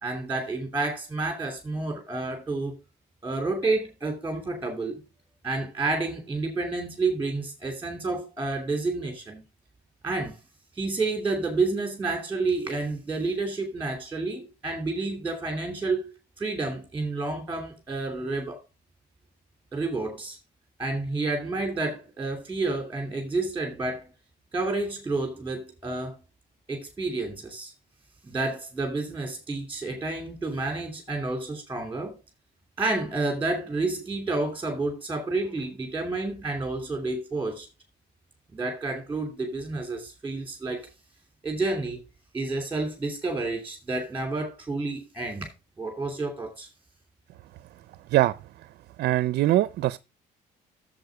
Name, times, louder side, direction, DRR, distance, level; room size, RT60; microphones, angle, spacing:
voice 1, 0.0-2.8 3.2-5.0 5.4-9.4 10.0-10.3 10.8-18.6 19.7-20.4 20.8-24.1 24.5-26.1 26.7-27.7 28.2-32.2 32.8-37.7 38.5-40.9 41.4-42.0 42.3-45.5 45.8-46.7, right 3 dB, 10° right, 2.8 m, -30 dB
voice 2, 49.0-50.0, right 15 dB, 70° right, 0.5 m, -22 dB
7.9 x 7.3 x 4.7 m
cardioid pair, 110°, 17 cm